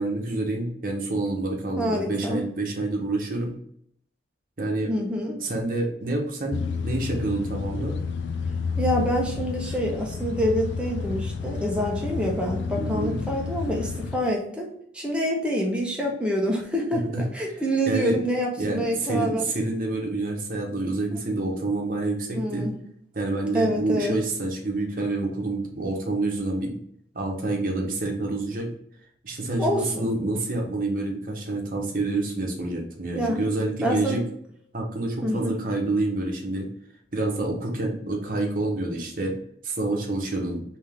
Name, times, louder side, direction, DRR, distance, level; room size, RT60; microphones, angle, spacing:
voice 1, 0.0-3.6 4.6-4.9 5.4-8.0 12.8-13.2 17.1-17.2 17.9-18.2 18.6-22.7 23.1-26.8 27.1-28.7 29.2-34.2 34.7-36.7 37.1-40.6, right 2 dB, 50° right, 0 dB, 0.9 m, -28 dB
voice 2, 1.7-2.5 4.9-5.4 8.8-19.5 22.3-22.7 23.5-24.2 29.6-30.1 33.1-33.5 33.8-34.2 35.2-35.6, equal, 5° right, -1 dB, 0.8 m, -26 dB
sound 1, 6.5-14.2, left 5 dB, 80° left, 0.4 m, -30 dB
3.5 x 2.8 x 3.5 m, 0.67 s
head